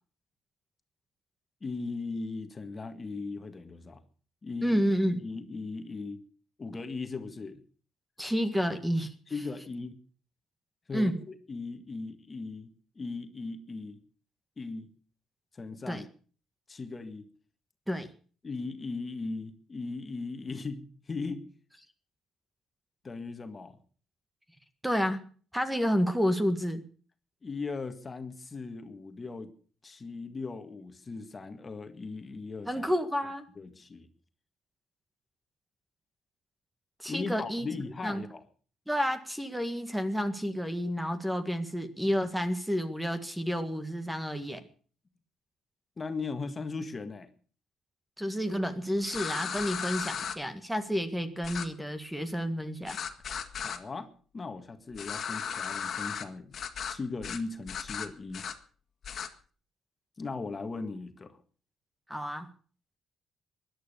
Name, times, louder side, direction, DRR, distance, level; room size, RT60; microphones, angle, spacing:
voice 1, 1.6-4.0 4.4-4.8 5.2-6.2 6.6-7.6 9.3-10.0 10.9-14.0 14.6-14.9 15.5-16.1 16.7-17.3 18.4-21.5 23.0-23.8 27.4-29.5 29.8-32.9 33.5-34.1 37.1-38.4 46.0-47.3 53.6-56.6 56.8-58.5 60.2-61.4, left 3 dB, 30° left, 7 dB, 1.8 m, -38 dB
voice 2, 4.6-5.2 8.2-9.1 10.9-11.2 15.9-16.0 17.9-18.1 24.8-25.2 25.5-26.8 32.7-33.4 37.0-37.7 38.0-38.2 38.9-44.7 48.2-53.0 62.1-62.5, equal, 5° right, 9 dB, 1.8 m, -30 dB
sound 1, 49.1-50.4 51.4-51.7 52.9-53.8 54.9-56.2 56.5-57.0 57.2-57.4 57.7-58.5 59.0-59.3, left 7 dB, 55° left, 2.0 m, -36 dB
17.0 x 11.5 x 6.8 m, 0.43 s
cardioid pair, 90°, 0 cm